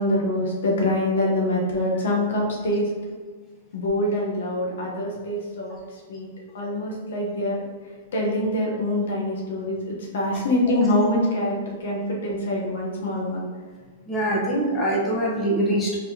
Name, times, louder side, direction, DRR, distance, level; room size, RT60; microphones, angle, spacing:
voice 1, 0.0-2.9 3.7-5.8 6.1-6.3 6.5-7.6 8.1-13.4, left 1 dB, 80° left, -2 dB, 1.0 m, -24 dB
voice 2, 14.1-16.0, right 1 dB, 15° left, -6 dB, 1.0 m, -23 dB
4.1 x 3.6 x 2.8 m, 1.5 s
hypercardioid pair, 145°, 0 cm